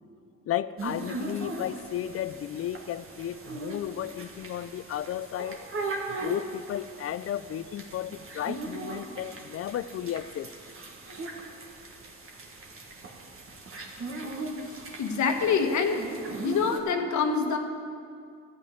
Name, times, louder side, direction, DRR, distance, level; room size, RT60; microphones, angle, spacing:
voice 1, 0.5-5.6 6.1-10.5, left 11 dB, 50° left, 16 dB, 0.5 m, -34 dB
sound 1, 0.8-16.8, right 2 dB, 45° right, 1.7 m, -39 dB
voice 2, 15.0-16.1 16.4-17.6, left 5 dB, 70° left, 5 dB, 1.3 m, -25 dB
12.0 x 6.1 x 9.3 m, 2.3 s
cardioid pair, 90°, 30 cm